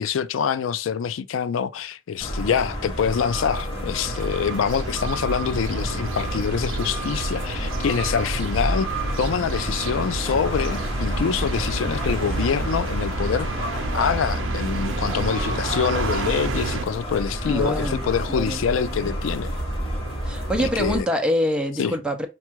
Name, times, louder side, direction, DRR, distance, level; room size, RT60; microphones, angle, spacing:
voice 1, 0.0-8.9 9.2-13.5 13.9-19.6 20.6-21.1 21.8-21.9, left 7 dB, 75° left, 0.4 m, -25 dB
sound 1, 2.2-21.0, equal, 25° left, 2.9 m, -29 dB
sound 2, 4.0-16.8, right 3 dB, 75° right, 0.6 m, -31 dB
voice 2, 17.5-18.6 20.3-22.3, equal, 5° right, 0.6 m, -25 dB
4.6 x 2.3 x 4.5 m
head